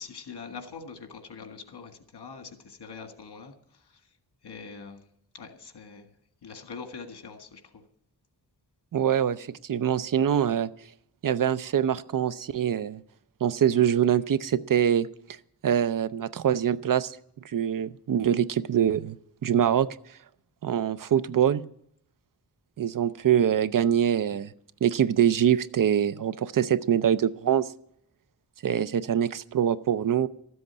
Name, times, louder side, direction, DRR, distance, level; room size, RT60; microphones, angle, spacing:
voice 1, 0.0-3.5 3.8-4.0 4.4-5.0 5.3-6.1 6.4-7.8, left 5 dB, 85° left, 6 dB, 1.8 m, -43 dB
voice 2, 8.9-10.7 11.2-13.0 13.4-15.1 15.6-17.2 17.4-19.2 19.4-19.9 20.6-21.6 22.8-24.5 24.8-27.7 28.6-30.3, right 9 dB, 55° right, 15 dB, 0.5 m, -24 dB
13.0 x 7.8 x 9.5 m, 0.71 s
wide cardioid pair, 155°, 39 cm